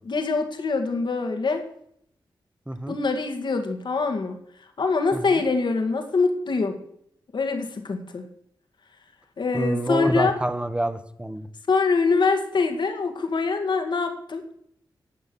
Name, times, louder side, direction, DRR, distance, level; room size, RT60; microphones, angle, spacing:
voice 1, 0.1-1.6 2.9-4.4 4.8-6.8 7.3-8.2 9.4-10.3 11.7-14.4, left 4 dB, 65° left, 5 dB, 2.1 m, -24 dB
voice 2, 2.7-3.0 5.1-5.4 9.5-11.5, right 1 dB, 10° right, 11 dB, 1.2 m, -27 dB
11.5 x 7.9 x 7.0 m, 0.69 s
cardioid pair, 65°, 8 cm